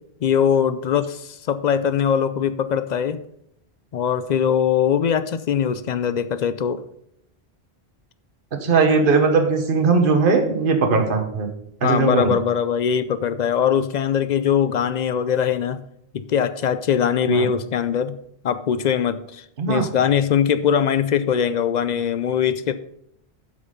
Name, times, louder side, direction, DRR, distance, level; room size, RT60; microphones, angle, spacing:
voice 1, 0.2-3.2 3.9-6.8 11.8-15.8 16.1-18.2 18.4-22.7, left 8 dB, 55° left, 13 dB, 0.5 m, -21 dB
voice 2, 8.6-11.5 11.8-12.3 17.3-17.5 19.6-19.9, right 4 dB, 55° right, 5 dB, 1.3 m, -19 dB
8.0 x 6.0 x 5.5 m, 0.74 s
omnidirectional pair, 1.1 m